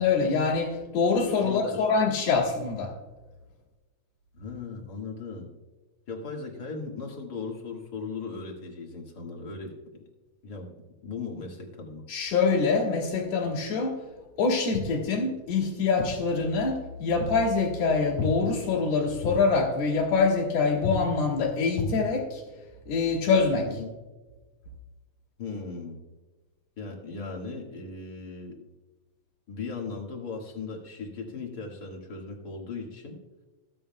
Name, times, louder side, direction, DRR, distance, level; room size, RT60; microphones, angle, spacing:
voice 1, 0.0-2.9 12.1-14.0 14.4-22.4 22.9-23.7, left 4 dB, 65° left, -4 dB, 2.9 m, -25 dB
voice 2, 1.4-1.9 4.3-5.5 6.1-9.8 10.4-10.7 11.0-12.1 23.7-23.9 25.4-26.0 26.8-28.6 29.5-33.2, left 4 dB, 40° left, 0 dB, 1.9 m, -37 dB
15.5 x 8.8 x 2.2 m, 1.2 s
omnidirectional pair, 3.5 m